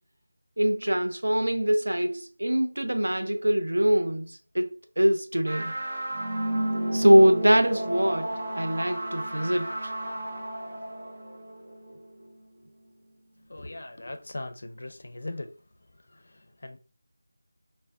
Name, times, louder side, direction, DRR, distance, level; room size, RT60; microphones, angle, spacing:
voice 1, 0.6-5.7 6.9-9.9, equal, 85° right, 0.5 m, -23 dB
sound 1, 5.5-12.3, right 1 dB, 40° right, 0.6 m, -32 dB
voice 2, 13.5-15.5 16.1-16.8, left 2 dB, 60° left, 0.4 m, -39 dB
3.3 x 2.1 x 2.5 m
figure-of-eight pair, 170°, 0 cm